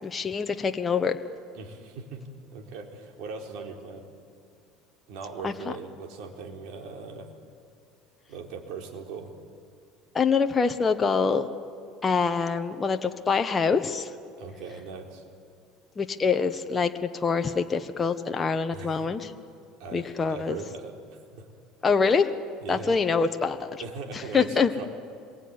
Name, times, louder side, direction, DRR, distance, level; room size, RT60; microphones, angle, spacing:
voice 1, 0.0-1.2 5.4-5.5 10.1-11.5 12.0-14.1 16.0-19.3 19.9-20.6 21.8-22.3 22.7-23.8 24.1-24.7, left 5 dB, 20° left, 6 dB, 1.3 m, -25 dB
voice 2, 1.5-2.2 2.5-4.1 5.1-7.3 8.3-9.3 14.4-15.2 18.7-19.1 19.8-21.0 21.3-21.5 22.6-22.9 23.8-24.9, right 4 dB, 70° right, 2 dB, 4.3 m, -39 dB
27.0 x 22.0 x 9.8 m, 2.4 s
supercardioid pair, 120°, 0 cm